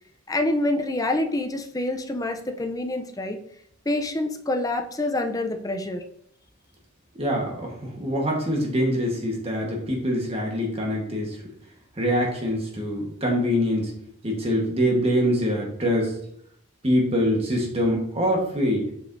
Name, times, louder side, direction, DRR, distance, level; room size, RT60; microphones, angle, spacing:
voice 1, 0.3-3.4 3.9-6.0, left 2 dB, 15° left, 6 dB, 0.5 m, -26 dB
voice 2, 7.2-11.4 12.0-13.9 14.2-16.2 16.8-18.8, equal, 30° right, -1 dB, 1.3 m, -24 dB
7.5 x 5.1 x 2.6 m, 0.70 s
head